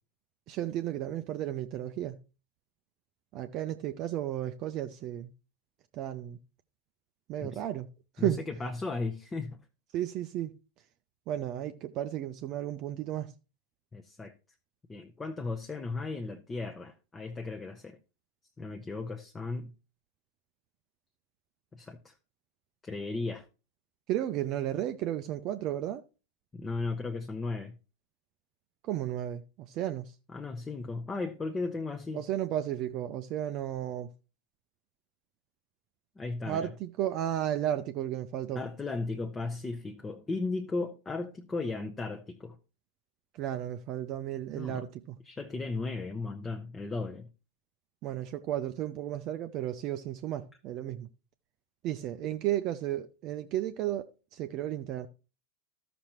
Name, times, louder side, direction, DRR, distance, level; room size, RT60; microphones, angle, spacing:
voice 1, 0.5-2.2 3.3-5.3 5.9-6.4 7.3-7.9 8.2-8.4 9.9-10.5 11.3-13.3 24.1-26.0 28.8-30.1 32.1-34.1 36.5-38.6 43.4-45.2 48.0-51.1 51.8-54.1 54.3-55.1, right 12 dB, 40° right, 0.5 m, -33 dB
voice 2, 8.2-9.6 13.9-14.3 14.9-18.0 18.6-19.7 21.7-22.1 22.8-23.5 26.5-27.8 30.3-32.2 36.2-36.7 38.5-42.6 44.5-44.8 45.2-47.3, left 3 dB, 15° left, 0.8 m, -36 dB
14.5 x 6.0 x 2.9 m
figure-of-eight pair, 90°, 0 cm